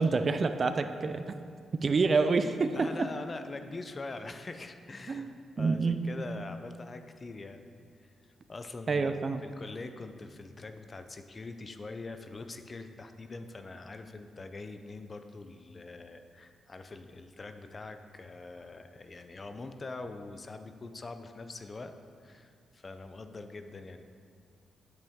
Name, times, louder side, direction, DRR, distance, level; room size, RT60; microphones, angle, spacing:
voice 1, 0.0-1.3 1.8-3.1 5.1-5.3 5.6-6.0 8.9-9.4, right 4 dB, 40° right, 9 dB, 0.3 m, -27 dB
voice 2, 2.7-5.3 5.6-7.7 8.0-8.1 8.5-9.2 9.4-21.9 22.2-24.0, left 3 dB, 30° left, 8 dB, 0.4 m, -43 dB
7.9 x 7.2 x 3.5 m, 2.3 s
cardioid pair, 115°, 0 cm